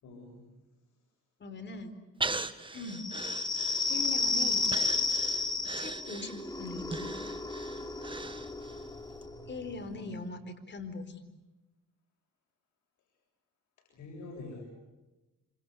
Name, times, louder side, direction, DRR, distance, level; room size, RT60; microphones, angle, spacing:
voice 1, 0.0-0.4 13.9-14.6, left 2 dB, 75° left, 0 dB, 7.5 m, -45 dB
voice 2, 1.4-2.0 2.7-3.1 3.9-4.8 5.8-7.1 9.5-11.2, left 3 dB, 35° left, 9 dB, 4.2 m, -41 dB
Breathing, 2.2-4.2 4.7-8.8 9.2-9.3, right 3 dB, 15° right, 1.7 m, -39 dB
sound 1, 2.9-10.2, left 3 dB, 15° left, 3.5 m, -33 dB
27.5 x 26.0 x 7.9 m, 1.0 s
cardioid pair, 90°, 30 cm